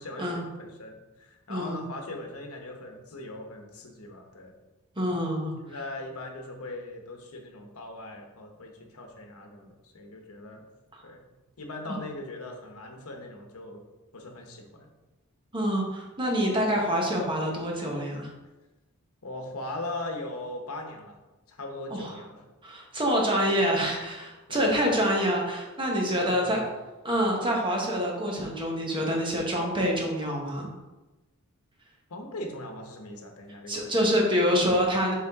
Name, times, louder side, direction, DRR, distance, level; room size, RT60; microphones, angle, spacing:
voice 1, 0.0-4.5 5.6-10.6 11.0-11.2 11.6-13.8 14.1-14.9 19.2-21.2 21.5-22.4 24.5-24.9 26.1-26.7 32.1-33.9, left 2 dB, 80° left, 3 dB, 1.0 m, -40 dB
voice 2, 1.5-1.8 5.0-5.5 10.9-11.0 15.5-18.3 21.9-22.1 22.6-26.6 27.0-30.7 33.7-35.1, equal, 20° right, -1 dB, 1.2 m, -26 dB
7.2 x 3.7 x 3.6 m, 1.1 s
head